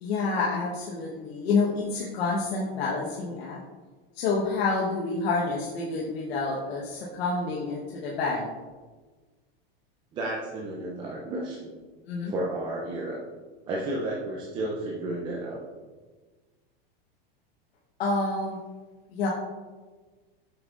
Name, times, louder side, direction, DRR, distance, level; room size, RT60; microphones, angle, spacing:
voice 1, 0.0-3.6 4.1-8.5 12.0-12.3 18.0-18.6 19.1-19.3, left 3 dB, 80° left, -4 dB, 1.2 m, -28 dB
voice 2, 10.1-11.7 12.3-13.2 13.7-15.6, right 1 dB, 15° right, -3 dB, 0.4 m, -32 dB
7.6 x 5.4 x 2.5 m, 1.3 s
supercardioid pair, 165°, 30 cm